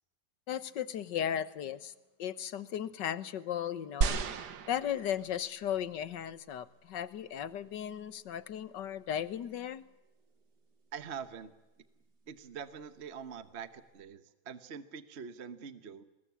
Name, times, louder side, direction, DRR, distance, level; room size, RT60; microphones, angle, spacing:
voice 1, 0.5-1.9 2.2-4.2 4.7-9.8, left 9 dB, 85° left, 15 dB, 1.7 m, -36 dB
sound 1, 4.0-5.5 6.3-6.4, right 5 dB, 75° right, 1.9 m, -33 dB
voice 2, 10.9-11.5 12.3-16.0, right 6 dB, 45° right, 12 dB, 1.2 m, -44 dB
25.5 x 21.0 x 8.4 m, 1.0 s
omnidirectional pair, 1.8 m